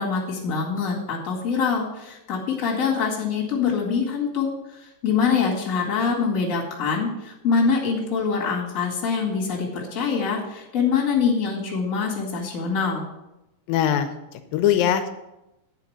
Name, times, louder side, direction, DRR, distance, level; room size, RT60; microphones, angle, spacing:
voice 1, 0.0-13.1, left 5 dB, 30° left, -2 dB, 1.8 m, -24 dB
voice 2, 13.7-15.1, left 10 dB, 85° left, 8 dB, 2.4 m, -22 dB
9.0 x 5.0 x 7.2 m, 0.93 s
omnidirectional pair, 4.0 m